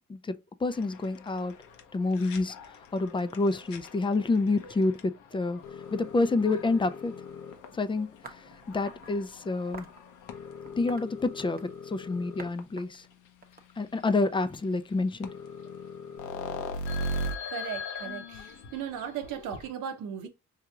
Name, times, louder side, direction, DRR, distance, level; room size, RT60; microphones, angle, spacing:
voice 1, 0.1-1.5 1.9-2.6 2.9-5.6 5.9-7.1 7.7-9.9 10.8-13.0 13.8-15.3, left 3 dB, 15° left, 0.4 m, -28 dB
sound 1, 0.7-12.6 13.3-13.4 13.5-13.6 14.0-14.1 14.9-15.0 15.2-19.7, left 2 dB, 85° left, 0.8 m, -40 dB
sound 2, 8.2-9.1 9.7-10.0 10.6-11.8 12.4-12.5 12.8-14.2, right 4 dB, 30° right, 0.8 m, -47 dB
voice 2, 17.5-20.3, right 8 dB, 90° right, 0.8 m, -37 dB
4.7 x 2.8 x 2.4 m
cardioid pair, 90°, 30 cm